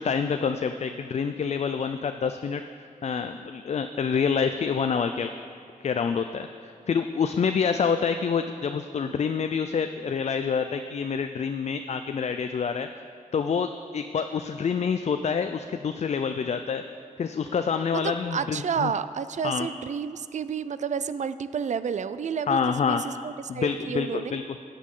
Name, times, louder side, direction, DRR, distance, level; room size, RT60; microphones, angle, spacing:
voice 1, 0.0-2.6 3.0-5.3 5.8-12.9 13.3-16.8 17.2-18.9 19.4-19.7 22.5-23.0 23.5-24.4, left 6 dB, 50° left, 8 dB, 0.4 m, -27 dB
voice 2, 17.9-24.4, right 7 dB, 60° right, 14 dB, 0.4 m, -31 dB
13.5 x 8.5 x 3.8 m, 2.3 s
wide cardioid pair, 105°, 14 cm